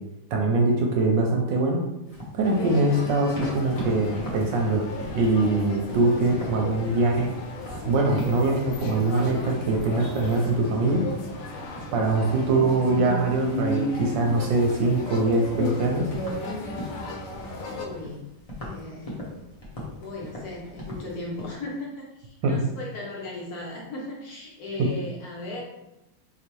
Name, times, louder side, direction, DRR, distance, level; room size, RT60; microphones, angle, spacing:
voice 1, 0.3-1.8 2.3-4.9 5.1-7.3 7.8-11.0 11.9-16.1 22.4-22.6 24.8-24.9, right 2 dB, 75° right, 1 dB, 1.2 m, -23 dB
sound 1, 2.1-21.6, left 1 dB, 40° left, 0.5 m, -41 dB
sound 2, 2.4-17.8, left 2 dB, 90° left, 1.5 m, -34 dB
voice 2, 17.5-18.2 18.6-19.1 20.0-25.6, left 2 dB, 65° left, -3 dB, 0.9 m, -37 dB
3.9 x 2.9 x 3.0 m, 0.90 s
omnidirectional pair, 2.3 m